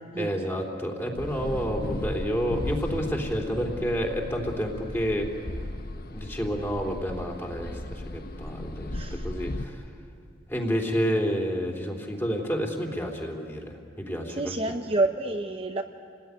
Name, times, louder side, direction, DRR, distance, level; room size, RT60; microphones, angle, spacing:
voice 1, 0.2-5.3 6.1-8.9 9.2-9.8 10.5-13.7 14.1-14.5, equal, 10° left, 1 dB, 3.1 m, -29 dB
sound 1, 1.2-9.7, left 1 dB, 55° left, 1.1 m, -36 dB
voice 2, 8.9-9.3 14.4-15.8, right 2 dB, 30° right, 4 dB, 0.9 m, -28 dB
28.5 x 19.5 x 9.6 m, 2.3 s
head